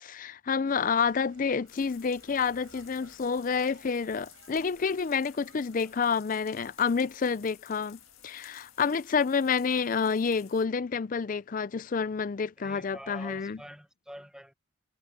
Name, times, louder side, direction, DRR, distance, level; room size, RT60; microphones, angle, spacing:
voice 1, 0.0-13.6, left 5 dB, 40° left, 0.4 m, -29 dB
sound 1, 0.7-10.1, right 3 dB, 70° right, 5.9 m, -60 dB
sound 2, 1.7-10.7, left 13 dB, 80° left, 1.7 m, -55 dB
voice 2, 12.6-14.5, equal, 5° right, 1.0 m, -46 dB
head